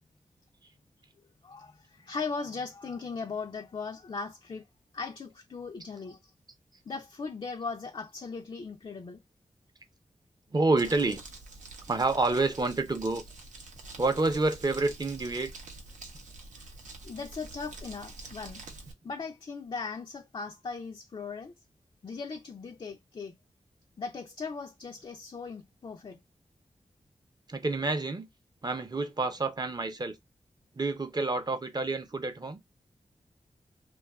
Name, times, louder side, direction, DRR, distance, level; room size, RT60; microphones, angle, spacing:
voice 1, 1.4-4.6 4.9-6.3 6.9-9.2 16.6-16.7 17.0-18.6 19.0-21.5 22.0-23.4 24.0-26.2, left 4 dB, 40° left, 0.4 m, -38 dB
voice 2, 10.5-11.2 11.9-13.2 14.0-15.5 27.5-28.3 28.6-30.2 30.8-32.6, right 3 dB, 35° right, 0.6 m, -28 dB
Crumpling crinkling, 10.8-18.9, right 2 dB, 90° right, 0.7 m, -46 dB
2.6 x 2.3 x 2.2 m
cardioid pair, 55°, 12 cm